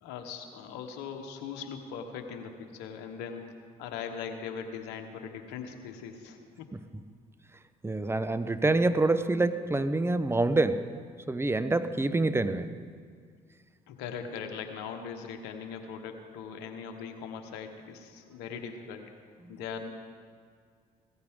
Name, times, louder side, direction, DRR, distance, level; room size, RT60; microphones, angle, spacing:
voice 1, 0.0-6.7 13.9-19.1 19.5-19.9, left 6 dB, 80° left, 5 dB, 1.2 m, -40 dB
voice 2, 7.8-10.9 11.3-12.8, right 2 dB, 15° right, 12 dB, 0.8 m, -26 dB
17.0 x 14.0 x 3.7 m, 2.1 s
supercardioid pair, 60°, 17 cm